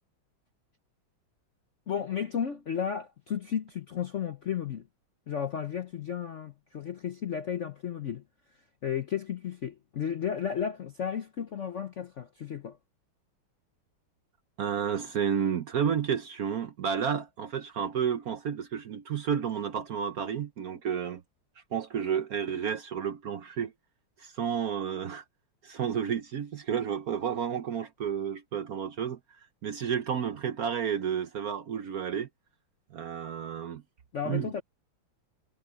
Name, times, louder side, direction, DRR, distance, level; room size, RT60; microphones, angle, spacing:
voice 1, 1.9-4.9 5.3-8.2 8.8-12.8 34.1-34.6, left 8 dB, 60° left, 0.8 m, -33 dB
voice 2, 14.6-21.2 21.7-23.7 24.2-25.2 25.6-29.2 29.6-32.3 32.9-33.8 34.3-34.5, right 8 dB, 60° right, 1.0 m, -31 dB
omnidirectional pair, 2.2 m